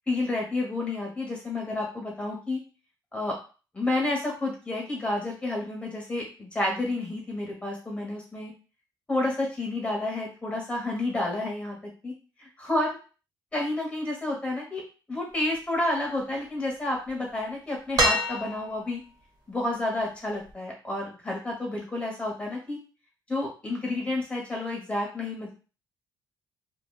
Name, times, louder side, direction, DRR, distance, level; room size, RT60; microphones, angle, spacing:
voice 1, 0.1-2.6 3.1-3.3 3.7-8.5 9.1-11.8 12.0-12.1 12.6-12.9 13.5-14.8 15.1-19.0 19.5-22.8 23.3-25.5, left 2 dB, 15° left, -2 dB, 1.1 m, -30 dB
sound 1, 18.0-19.0 20.5-20.6, right 1 dB, 50° right, 0.9 m, -26 dB
2.6 x 2.2 x 2.4 m, 0.35 s
cardioid pair, 120°, 8 cm